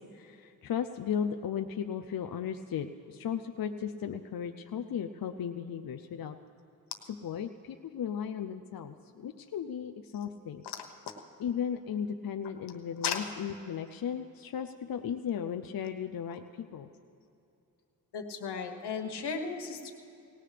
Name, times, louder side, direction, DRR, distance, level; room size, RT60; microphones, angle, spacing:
voice 1, 0.0-6.3 7.2-10.6 11.4-16.9, left 8 dB, 60° left, 7 dB, 0.6 m, -36 dB
voice 2, 18.1-19.9, left 6 dB, 85° left, 5 dB, 1.2 m, -35 dB
19.0 x 16.5 x 3.3 m, 2.7 s
cardioid pair, 50°, 39 cm